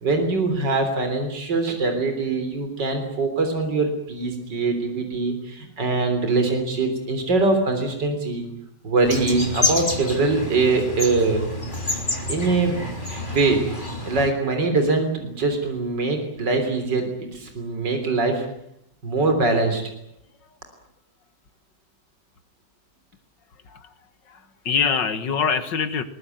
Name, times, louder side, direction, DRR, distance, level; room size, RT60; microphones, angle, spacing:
voice 1, 0.0-8.4 8.8-11.5 12.3-12.9 13.2-13.6 14.1-18.4 19.0-19.8, right 3 dB, 75° right, 5 dB, 4.1 m, -23 dB
sound 1, 9.0-14.3, left 2 dB, 25° left, 3.7 m, -28 dB
voice 2, 24.3-26.0, left 6 dB, 90° left, 11 dB, 2.4 m, -24 dB
22.5 x 20.0 x 9.3 m, 0.76 s
omnidirectional pair, 1.9 m